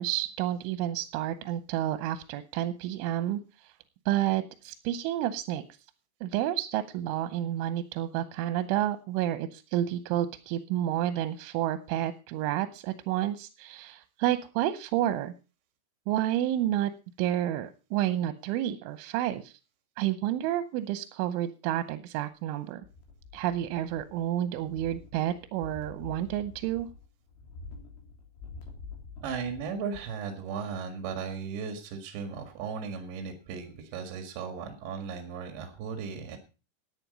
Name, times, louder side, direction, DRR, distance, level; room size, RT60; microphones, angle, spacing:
voice 1, 0.0-3.7 4.1-5.6 6.2-15.3 16.1-16.9 17.2-19.5 20.0-22.8 23.3-26.9, right 12 dB, 90° right, 11 dB, 3.2 m, -30 dB
sound 1, 22.8-24.3 24.5-29.8 30.2-30.3, left 4 dB, 85° left, 5.5 m, -47 dB
voice 2, 29.2-36.4, right 6 dB, 70° right, 6 dB, 4.0 m, -36 dB
14.0 x 9.3 x 5.2 m, 0.33 s
omnidirectional pair, 5.4 m